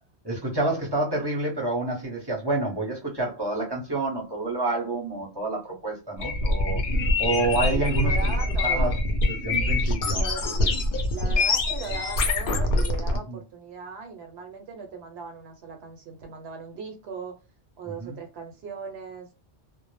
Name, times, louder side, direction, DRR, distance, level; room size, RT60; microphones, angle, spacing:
voice 1, 0.2-6.8 7.2-8.3 8.6-8.9 9.3-10.7 13.3-13.4 18.0-18.2, right 2 dB, 25° right, 0.7 m, -28 dB
sound 1, 6.2-13.2, left 2 dB, 60° left, 0.6 m, -24 dB
voice 2, 7.6-8.9 10.1-10.7 11.1-17.3 17.8-19.3, right 5 dB, 70° right, 0.8 m, -38 dB
2.0 x 2.0 x 3.0 m
omnidirectional pair, 1.2 m